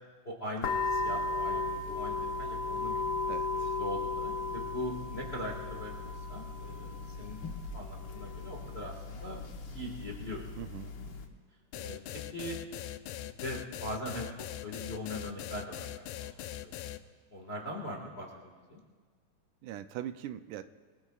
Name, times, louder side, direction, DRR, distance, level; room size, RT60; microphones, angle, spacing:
voice 1, 0.2-3.0 3.5-7.4 7.7-9.4 9.7-10.4 10.8-10.9 11.7-12.6 13.4-16.9 17.3-18.8, equal, 30° left, -2 dB, 1.2 m, -41 dB
sound 1, 0.6-11.2, left 3 dB, 65° left, 1.2 m, -36 dB
voice 2, 3.3-3.8 10.6-10.9 19.6-20.6, right 11 dB, 80° right, 10 dB, 2.0 m, -41 dB
sound 2, 11.7-17.0, left 12 dB, 85° left, 1.6 m, -41 dB
27.0 x 20.0 x 2.4 m, 1.5 s
omnidirectional pair, 3.9 m